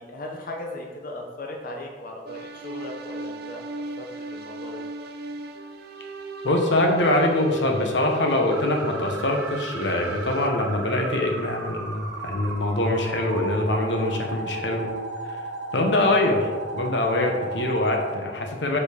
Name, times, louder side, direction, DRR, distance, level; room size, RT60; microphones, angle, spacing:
voice 1, 0.0-3.7 4.0-4.8 15.9-16.3, left 1 dB, 55° left, 0 dB, 0.8 m, -37 dB
sound 1, 2.3-10.5, right 2 dB, 60° right, 0.5 m, -36 dB
voice 2, 6.4-14.9 15.7-16.5 16.7-18.8, left 1 dB, 85° left, 2 dB, 1.0 m, -23 dB
sound 2, 8.5-18.2, right 2 dB, 90° right, 0.8 m, -35 dB
5.4 x 4.3 x 5.0 m, 1.4 s
head